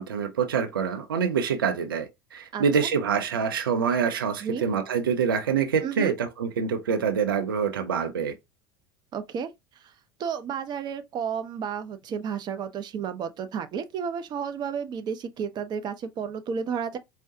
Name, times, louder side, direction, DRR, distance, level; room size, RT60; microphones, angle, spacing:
voice 1, 0.0-8.3, right 6 dB, 80° right, 0.6 m, -26 dB
voice 2, 5.8-6.2 9.1-9.5 10.2-17.0, right 7 dB, 40° right, 0.7 m, -32 dB
4.7 x 2.1 x 2.7 m
hypercardioid pair, 75°, 12 cm